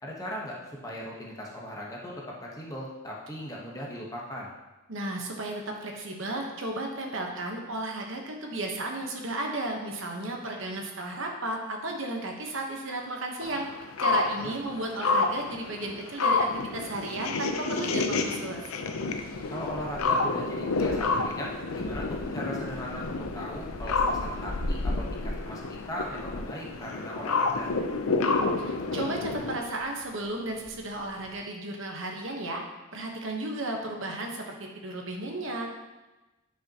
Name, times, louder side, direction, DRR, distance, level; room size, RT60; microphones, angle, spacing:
voice 1, 0.0-4.5 14.4-14.5 19.5-27.7, equal, 15° left, -3 dB, 1.1 m, -38 dB
voice 2, 4.9-13.7 14.0-18.6 28.6-32.6 32.9-35.8, right 2 dB, 65° right, 1 dB, 1.1 m, -34 dB
sound 1, 13.4-29.6, left 3 dB, 90° left, 0.6 m, -29 dB
sound 2, 19.0-31.4, left 1 dB, 45° left, 0.5 m, -40 dB
9.9 x 5.4 x 2.9 m, 1.1 s
head